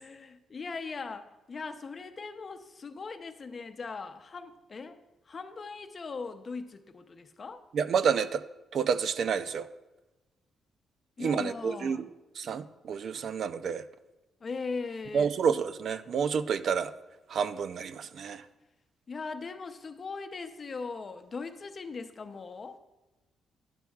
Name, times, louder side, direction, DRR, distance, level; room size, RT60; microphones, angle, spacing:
voice 1, 0.0-5.0 5.3-7.6 11.2-12.0 14.4-15.3 19.1-22.8, left 4 dB, 35° left, 8 dB, 0.7 m, -39 dB
voice 2, 7.7-8.4 8.7-9.7 11.2-13.9 15.1-16.9 17.3-18.5, right 6 dB, 60° right, 12 dB, 0.4 m, -29 dB
11.5 x 11.5 x 2.4 m, 1.1 s
cardioid pair, 130°, 0 cm